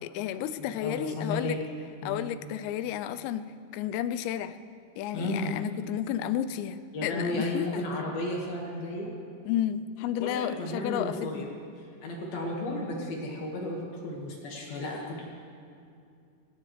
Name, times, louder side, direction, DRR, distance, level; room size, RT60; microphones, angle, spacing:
voice 1, 0.0-1.6 2.1-3.4 3.7-4.6 5.0-7.8 9.5-11.5, left 11 dB, 90° left, 12 dB, 3.3 m, -32 dB
voice 2, 0.8-1.6 2.0-2.3 5.1-5.6 6.9-9.1 10.2-11.5 12.0-15.3, left 1 dB, 60° left, -2 dB, 3.0 m, -33 dB
24.0 x 17.5 x 3.2 m, 2.4 s
omnidirectional pair, 5.9 m